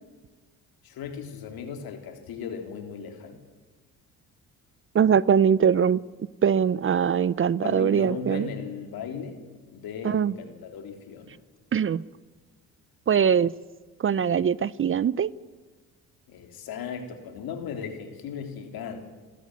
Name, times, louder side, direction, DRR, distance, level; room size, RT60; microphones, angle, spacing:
voice 1, 0.8-3.4 7.6-9.4 9.7-11.3 16.3-19.0, left 6 dB, 75° left, 6 dB, 3.7 m, -37 dB
voice 2, 4.9-6.0 6.4-8.5 10.0-10.3 11.7-12.0 13.1-13.5 14.0-15.3, right 7 dB, 35° right, 21 dB, 0.6 m, -22 dB
27.5 x 13.0 x 9.4 m, 1.4 s
cardioid pair, 80°, 36 cm